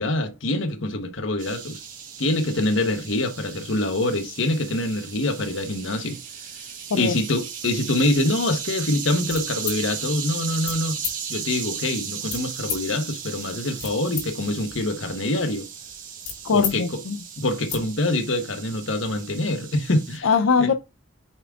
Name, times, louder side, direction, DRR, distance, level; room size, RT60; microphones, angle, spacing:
voice 1, 0.0-1.8 2.2-6.2 6.9-11.0 11.3-15.7 16.5-17.0 17.4-20.3 20.6-20.7, left 2 dB, 70° left, 1.1 m, -25 dB
sound 1, 1.4-20.2, right 7 dB, 40° right, 1.2 m, -36 dB
sound 2, 9.2-9.8 10.6-10.8 11.0-11.1 12.2-12.8 13.5-14.2 14.6-16.8 17.1-17.2 17.5-17.8, left 8 dB, 50° left, 3.2 m, -32 dB
voice 2, 16.4-17.2 20.2-20.7, left 5 dB, 85° left, 0.5 m, -21 dB
8.6 x 3.6 x 3.5 m
head